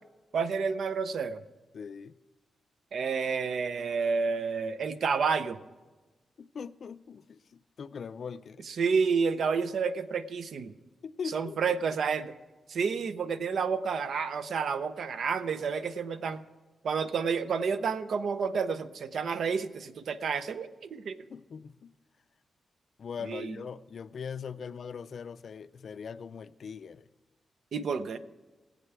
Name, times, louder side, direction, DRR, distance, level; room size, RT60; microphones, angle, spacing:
voice 1, 0.3-1.4 2.9-5.6 8.7-10.7 11.3-12.3 12.7-16.4 16.8-21.2 23.3-23.6 27.7-28.2, right 5 dB, 65° right, 0.6 m, -30 dB
voice 2, 1.7-2.2 6.4-8.7 11.0-11.6 21.3-21.9 23.0-27.1, left 6 dB, 50° left, 0.4 m, -41 dB
18.5 x 8.3 x 4.7 m
wide cardioid pair, 155°, 0 cm